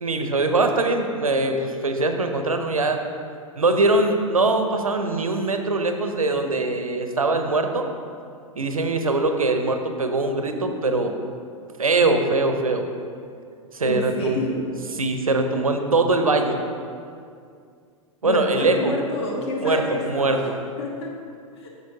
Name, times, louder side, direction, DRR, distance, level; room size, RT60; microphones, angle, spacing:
voice 1, 0.0-3.0 3.6-7.9 8.6-11.1 11.8-12.8 13.7-14.4 15.0-16.6 18.2-19.0 19.6-20.4, right 2 dB, 80° right, 6 dB, 0.7 m, -22 dB
voice 2, 13.8-14.6 18.2-20.5 20.8-21.1 21.6-21.7, left 1 dB, 55° left, -1 dB, 1.3 m, -28 dB
10.5 x 6.7 x 2.7 m, 2.3 s
figure-of-eight pair, 95°, 18 cm